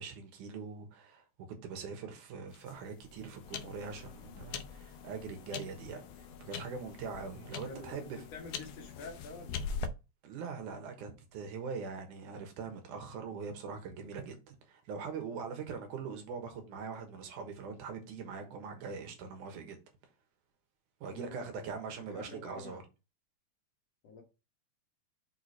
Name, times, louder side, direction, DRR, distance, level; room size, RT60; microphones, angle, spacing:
voice 1, 0.0-8.2 10.2-19.8 21.0-22.8, right 5 dB, 80° right, 2.7 m, -42 dB
sound 1, 2.5-9.9, left 6 dB, 80° left, 1.4 m, -43 dB
voice 2, 8.3-9.7 21.1-21.7 22.1-22.8 24.0-24.2, left 3 dB, 60° left, 2.3 m, -48 dB
5.8 x 4.3 x 4.6 m
omnidirectional pair, 3.5 m